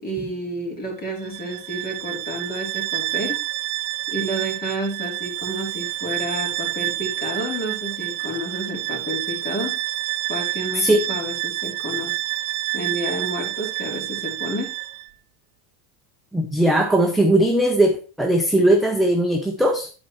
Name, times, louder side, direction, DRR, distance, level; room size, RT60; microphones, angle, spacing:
voice 1, 0.0-3.4 4.1-9.7 10.3-12.2 12.7-14.7, right 1 dB, 20° left, 2.8 m, -30 dB
Bowed string instrument, 1.2-15.1, right 17 dB, 50° right, 0.6 m, -28 dB
voice 2, 16.3-19.9, right 1 dB, ahead, 0.5 m, -19 dB
10.0 x 4.4 x 4.5 m
supercardioid pair, 150°, 40 cm